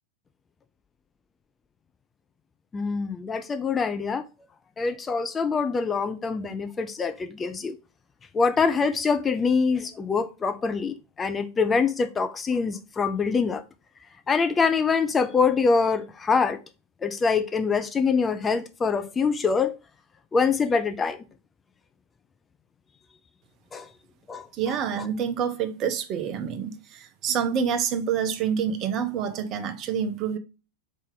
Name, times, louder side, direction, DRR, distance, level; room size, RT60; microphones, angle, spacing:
voice 1, 2.7-4.2 4.8-7.8 8.3-13.6 14.3-16.6 17.0-19.7 20.3-21.2 23.7-23.9 24.3-25.1, left 5 dB, 20° left, 0.4 m, -25 dB
voice 2, 24.6-30.4, right 7 dB, 35° right, 0.6 m, -27 dB
4.2 x 3.1 x 3.7 m
figure-of-eight pair, 90°, 0 cm